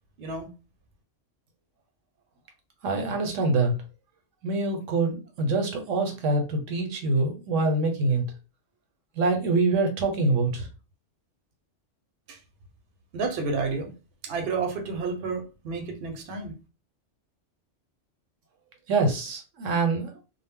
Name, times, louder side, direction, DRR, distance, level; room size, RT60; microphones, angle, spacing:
voice 1, 2.8-3.7 4.4-8.2 9.2-10.7 18.9-20.1, right 3 dB, 80° right, 1.0 m, -25 dB
voice 2, 13.1-13.9 14.2-16.5, right 4 dB, 60° right, 0.8 m, -30 dB
2.1 x 2.0 x 3.5 m
omnidirectional pair, 1.3 m